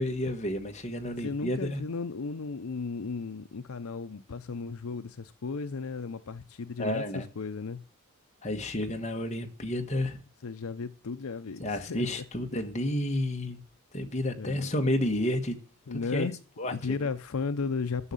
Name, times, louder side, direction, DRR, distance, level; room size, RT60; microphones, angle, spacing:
voice 1, 0.0-1.8 6.8-7.3 8.4-10.2 11.6-13.6 13.9-15.6 16.1-16.3 16.6-16.9, left 1 dB, 30° left, 1.4 m, -30 dB
voice 2, 1.2-7.8 8.9-9.0 10.4-12.2 14.4-14.7 15.9-16.4 16.7-18.1, left 4 dB, 75° left, 0.6 m, -35 dB
11.0 x 6.4 x 8.4 m
head